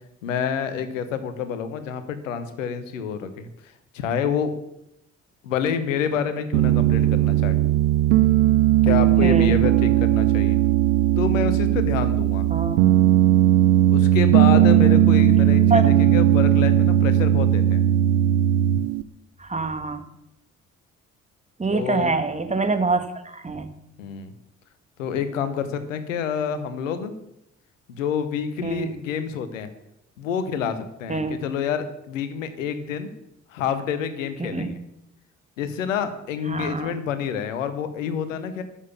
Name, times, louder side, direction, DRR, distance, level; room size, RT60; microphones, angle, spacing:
voice 1, 0.2-4.5 5.4-7.6 8.8-10.6 11.2-12.5 13.9-17.8 21.7-22.1 24.0-24.3 25.0-27.1 27.9-29.7 30.2-33.1 33.5-34.8 35.6-38.6, left 7 dB, 80° left, 11 dB, 1.0 m, -28 dB
Piano, 6.5-19.0, right 12 dB, 75° right, 0.6 m, -18 dB
voice 2, 9.2-9.6 12.5-12.8 14.5-15.0 15.7-15.9 19.4-20.0 21.6-23.7 28.6-28.9 31.1-31.4 34.4-34.7 36.5-36.9, right 3 dB, 20° right, 8 dB, 1.6 m, -25 dB
11.0 x 7.3 x 7.1 m, 0.82 s
figure-of-eight pair, 45°, 38 cm